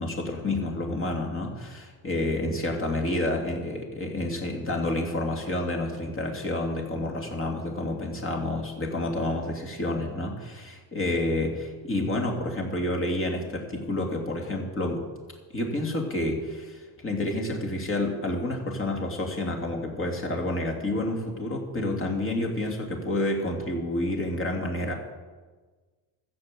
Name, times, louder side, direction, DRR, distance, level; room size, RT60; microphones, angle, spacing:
voice 1, 0.0-15.1 15.5-24.9, left 1 dB, 25° left, 1 dB, 2.6 m, -29 dB
14.0 x 7.8 x 7.5 m, 1.4 s
cardioid pair, 115°, 49 cm